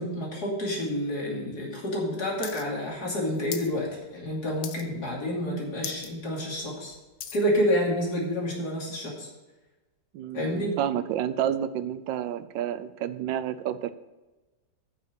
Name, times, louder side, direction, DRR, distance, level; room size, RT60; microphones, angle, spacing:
voice 1, 0.0-6.9 7.3-9.3 10.3-10.8, equal, 60° left, -2 dB, 3.2 m, -29 dB
sound 1, 2.4-2.6 2.9-3.7 4.1-4.3 4.6-5.1 5.4-5.5 5.8-6.1 6.5-7.5 8.1-8.2, left 9 dB, 85° left, 1.5 m, -38 dB
voice 2, 10.1-13.9, right 10 dB, 90° right, 13 dB, 1.4 m, -30 dB
9.2 x 6.6 x 6.8 m, 1.1 s
omnidirectional pair, 2.0 m